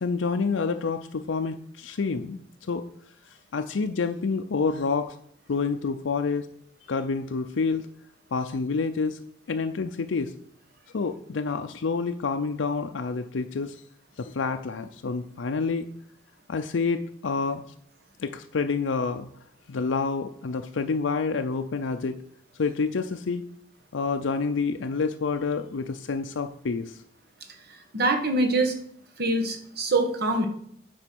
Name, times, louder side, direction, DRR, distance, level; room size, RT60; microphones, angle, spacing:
voice 1, 0.0-2.8 3.2-5.2 5.5-6.5 6.9-7.9 8.3-9.2 9.5-10.3 10.9-13.8 14.2-15.9 16.5-17.6 18.2-19.3 19.7-22.2 22.5-23.4 23.9-27.0, left 4 dB, 80° left, 6 dB, 0.5 m, -28 dB
voice 2, 27.9-28.7 29.2-30.5, right 2 dB, 55° right, 5 dB, 1.5 m, -24 dB
9.0 x 4.6 x 6.1 m, 0.64 s
head